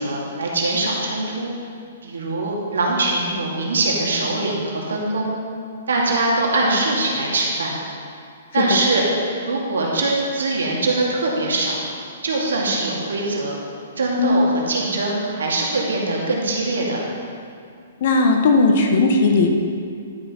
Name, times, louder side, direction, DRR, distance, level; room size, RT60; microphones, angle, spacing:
voice 1, 0.0-1.5 2.0-5.3 5.9-7.8 8.5-9.0 9.4-11.8 12.2-13.5 14.0-17.0, right 2 dB, 85° right, -3 dB, 2.3 m, -22 dB
voice 2, 18.0-19.5, left 3 dB, 55° left, 3 dB, 1.3 m, -17 dB
11.5 x 5.9 x 5.7 m, 2.3 s
hypercardioid pair, 135°, 0 cm